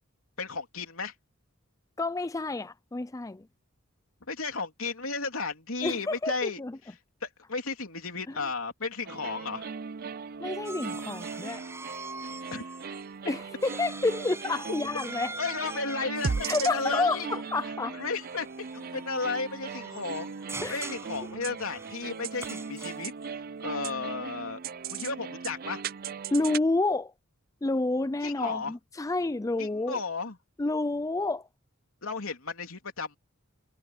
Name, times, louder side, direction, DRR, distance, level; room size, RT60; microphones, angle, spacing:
voice 1, 0.4-1.1 4.3-6.6 7.2-9.7 12.5-12.6 15.4-17.4 17.6-18.5 18.7-24.6 24.9-25.8 28.2-28.7 29.6-30.4 32.0-33.2, left 4 dB, 80° left, 3.4 m, -34 dB
voice 2, 2.0-3.5 5.8-6.8 10.4-11.6 13.3-15.3 16.4-18.0 20.6-20.9 26.3-27.1 27.6-30.0 30.6-31.5, left 2 dB, 15° left, 0.4 m, -29 dB
sound 1, 9.1-26.6, right 5 dB, 45° right, 0.5 m, -38 dB
sound 2, 10.6-13.0 13.3-23.2, right 3 dB, 15° right, 6.6 m, -43 dB
head